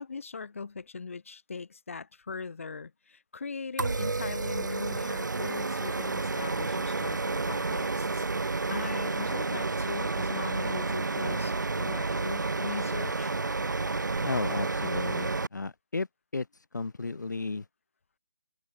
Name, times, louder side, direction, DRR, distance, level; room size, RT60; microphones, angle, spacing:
voice 1, 0.0-8.3 8.7-13.3, left 4 dB, 45° left, 4.8 m, -40 dB
sound 1, 3.8-15.5, right 3 dB, 70° right, 7.0 m, -30 dB
voice 2, 14.2-16.1 16.3-16.5 16.7-17.7, left 3 dB, 65° left, 4.1 m, -33 dB
hypercardioid pair, 175°, 10 cm